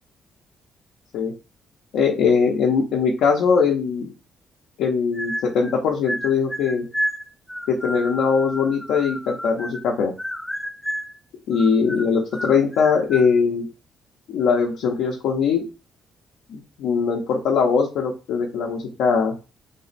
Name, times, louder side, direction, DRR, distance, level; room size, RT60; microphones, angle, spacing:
voice 1, 1.9-4.1 4.8-6.9 7.7-10.1 11.5-13.7 14.3-15.6 16.5-19.3, left 5 dB, 85° left, -1 dB, 0.6 m, -21 dB
sound 1, 5.1-5.8 6.1-9.9 10.2-11.2 11.5-13.3, equal, 10° left, 0.3 m, -31 dB
3.4 x 2.1 x 4.0 m, 0.30 s
cardioid pair, 90°, 0 cm